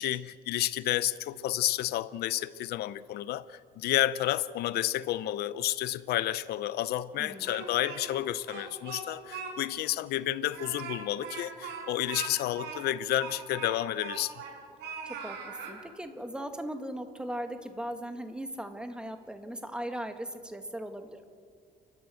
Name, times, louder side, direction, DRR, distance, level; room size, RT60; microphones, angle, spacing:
voice 1, 0.0-14.3, left 13 dB, 70° left, 0.6 m, -31 dB
voice 2, 7.2-7.5 15.0-21.2, right 1 dB, 5° right, 1.9 m, -38 dB
Speech, 7.2-8.2 8.5-9.5 9.8-9.9 10.4-14.5 14.8-15.7, right 5 dB, 85° right, 5.1 m, -40 dB
30.0 x 12.5 x 7.8 m
cardioid pair, 110°, 17 cm